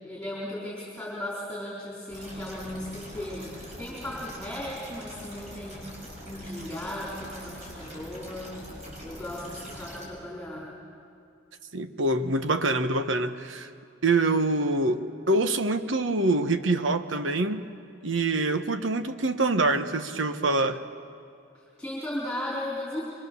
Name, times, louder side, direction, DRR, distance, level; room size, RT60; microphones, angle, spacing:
voice 1, 0.0-5.8 6.2-8.6 9.0-10.7 21.8-23.0, left 1 dB, 5° left, -6 dB, 4.1 m, -36 dB
sound 1, 2.1-10.1, equal, 35° right, 6.6 m, -43 dB
voice 2, 11.7-13.7 14.0-17.6 18.0-20.8, right 2 dB, 85° right, 8 dB, 1.2 m, -25 dB
25.0 x 24.0 x 7.0 m, 2.4 s
head